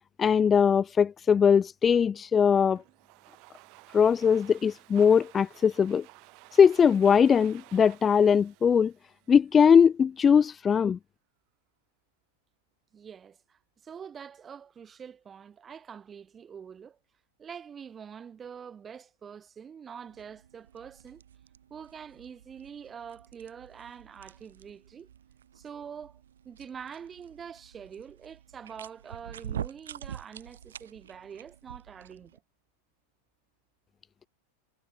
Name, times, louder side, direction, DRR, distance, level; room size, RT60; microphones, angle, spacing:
voice 1, 0.2-2.8 3.9-6.0 6.5-8.9 9.3-11.0, left 7 dB, 20° left, 0.4 m, -21 dB
Domestic sounds home sounds, 2.8-9.6, right 30 dB, 45° right, 3.6 m, -54 dB
voice 2, 12.9-17.0 17.4-21.2 21.7-25.1 25.5-32.4, right 7 dB, 20° right, 5.5 m, -45 dB
sound 1, 20.1-32.4, right 9 dB, 65° right, 2.7 m, -46 dB
figure-of-eight pair, 90°, 0 cm